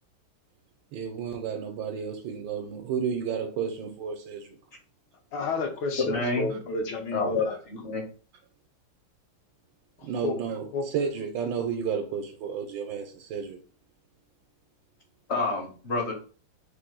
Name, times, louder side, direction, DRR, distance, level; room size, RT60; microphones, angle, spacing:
voice 1, 0.9-4.5 10.0-10.7 10.9-13.6, right 7 dB, 80° right, 1.3 m, -32 dB
voice 2, 5.3-7.6 10.0-10.4 10.7-10.9, left 3 dB, 75° left, 1.6 m, -31 dB
voice 3, 6.1-6.5 7.1-8.0 15.3-16.1, left 3 dB, 50° left, 0.9 m, -28 dB
4.3 x 2.6 x 3.7 m
omnidirectional pair, 2.0 m